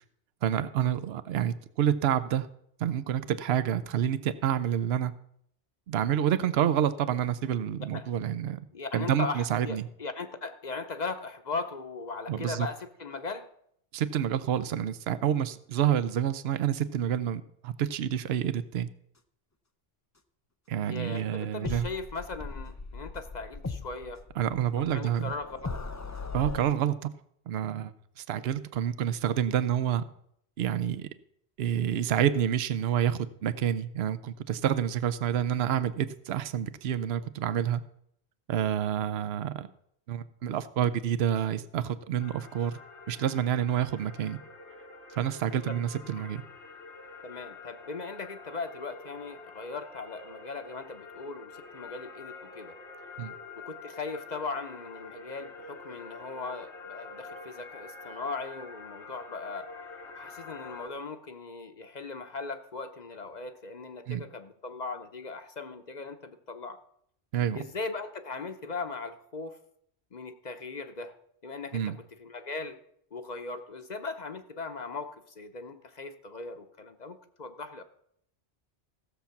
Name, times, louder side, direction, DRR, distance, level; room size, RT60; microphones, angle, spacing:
voice 1, 0.4-2.5 2.8-5.1 5.9-8.6 8.9-9.9 12.3-12.7 13.9-18.9 20.7-21.9 24.4-25.3 26.3-27.1 27.5-27.9 28.2-30.0 30.6-31.1 31.6-37.8 38.5-39.7 40.1-42.8 43.1-44.4 45.1-46.4 53.2-53.3 64.1-64.2 67.3-67.6 71.7-72.0, right 10 dB, 70° right, 14 dB, 0.9 m, -28 dB
voice 2, 8.7-13.5 20.9-24.2 24.8-25.6 45.7-45.8 46.2-46.3 47.2-52.8 53.6-59.7 60.1-66.8 67.5-69.6 70.1-71.1 71.4-72.8 73.1-77.8, left 4 dB, 45° left, 8 dB, 0.8 m, -38 dB
sound 1, 21.6-26.6, left 3 dB, 25° left, 0.4 m, -39 dB
sound 2, 42.2-60.9, left 4 dB, 90° left, 1.5 m, -47 dB
15.5 x 7.0 x 5.8 m, 0.71 s
omnidirectional pair, 1.1 m